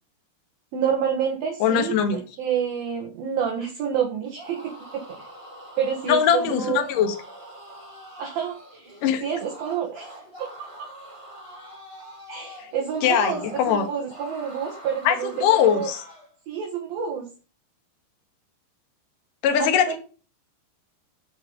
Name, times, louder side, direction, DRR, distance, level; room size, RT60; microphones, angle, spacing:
voice 1, 0.7-5.0 5.8-6.8 8.2-10.5 10.8-10.9 12.3-15.9 16.5-17.3 19.9-20.0, right 7 dB, 60° right, 0 dB, 2.9 m, -28 dB
voice 2, 1.6-2.2 6.1-7.1 9.0-9.2 13.0-13.8 15.0-16.0 19.4-20.0, left 8 dB, 60° left, 6 dB, 2.5 m, -21 dB
sound 1, 4.2-16.3, right 1 dB, 20° right, 0.9 m, -44 dB
13.5 x 4.8 x 5.1 m, 0.36 s
omnidirectional pair, 5.4 m